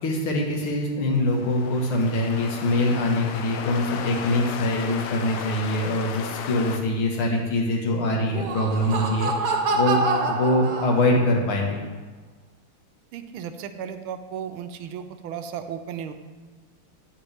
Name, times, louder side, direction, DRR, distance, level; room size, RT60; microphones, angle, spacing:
voice 1, 0.0-10.0 10.3-11.8, left 1 dB, 75° left, 0 dB, 2.2 m, -24 dB
sound 1, 1.2-6.8, left 6 dB, 90° left, 1.6 m, -35 dB
Laughter, 8.2-11.4, right 3 dB, 60° right, 1.3 m, -26 dB
voice 2, 13.1-16.1, right 8 dB, 80° right, 8 dB, 1.4 m, -35 dB
8.9 x 8.8 x 3.4 m, 1.4 s
omnidirectional pair, 2.4 m